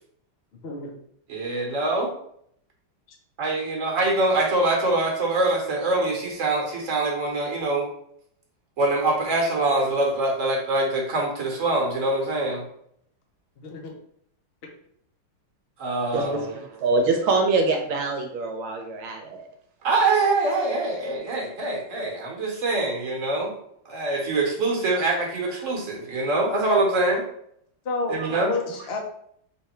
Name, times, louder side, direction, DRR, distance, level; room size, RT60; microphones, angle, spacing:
voice 1, 0.6-1.0 13.6-13.9 27.8-29.0, left 3 dB, 55° left, 0 dB, 0.6 m, -30 dB
voice 2, 1.3-2.1 3.4-7.9 8.8-12.6 15.8-16.5 19.8-23.5 23.8-27.3 28.1-28.5, right 2 dB, 45° right, 0 dB, 1.2 m, -24 dB
voice 3, 16.1-19.5, right 3 dB, 75° right, 4 dB, 1.4 m, -24 dB
3.6 x 3.4 x 4.2 m, 0.69 s
omnidirectional pair, 2.4 m